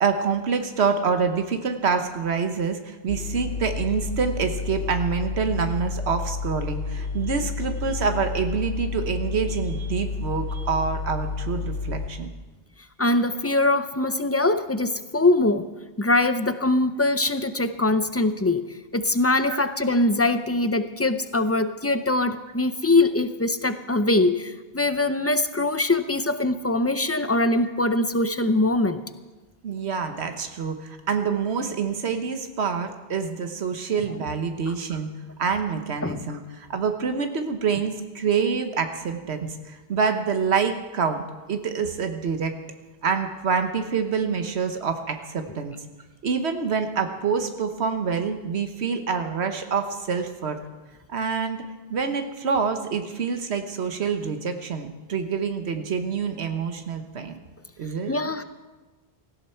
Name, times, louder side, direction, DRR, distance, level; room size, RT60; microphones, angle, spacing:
voice 1, 0.0-12.3 19.5-19.6 29.6-35.1 35.4-41.2 41.5-42.5 43.0-45.7 46.2-50.6 51.1-51.6 51.9-57.3 57.8-58.1, right 5 dB, 90° right, 7 dB, 1.3 m, -26 dB
sound 1, 3.1-12.1, left 4 dB, 70° left, 2.1 m, -30 dB
voice 2, 13.0-15.7 16.0-29.0 34.7-34.8 36.0-36.3 58.1-58.4, left 2 dB, 20° left, 10 dB, 0.5 m, -22 dB
17.5 x 16.0 x 4.4 m, 1.2 s
omnidirectional pair, 1.1 m